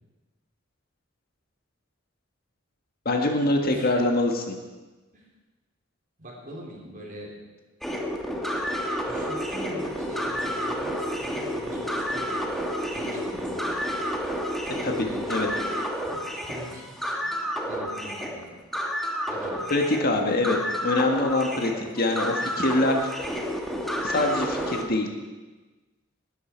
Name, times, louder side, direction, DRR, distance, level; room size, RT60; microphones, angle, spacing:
voice 1, 3.0-4.5 14.8-14.9 15.3-15.5 19.7-20.6 20.8-23.0 24.0-25.1, left 2 dB, 50° left, 3 dB, 1.6 m, -24 dB
voice 2, 6.2-7.3 9.0-12.4 12.9-13.9 14.9-15.3 16.1-17.4 17.7-18.5 19.3-19.7, equal, 45° right, -2 dB, 3.6 m, -42 dB
sound 1, 7.8-24.8, equal, ahead, 1.5 m, -30 dB
19.0 x 11.5 x 4.6 m, 1.2 s
head